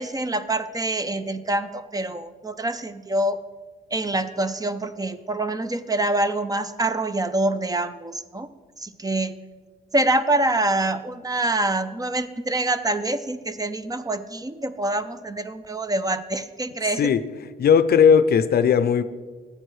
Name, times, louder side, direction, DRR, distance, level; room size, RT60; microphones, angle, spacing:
voice 1, 0.0-3.4 3.9-8.5 8.8-9.4 9.9-17.1, right 2 dB, 20° right, 12 dB, 0.5 m, -25 dB
voice 2, 17.6-19.0, left 7 dB, 50° left, 13 dB, 0.5 m, -17 dB
14.5 x 8.7 x 3.2 m, 1.4 s
cardioid pair, 90°, 20 cm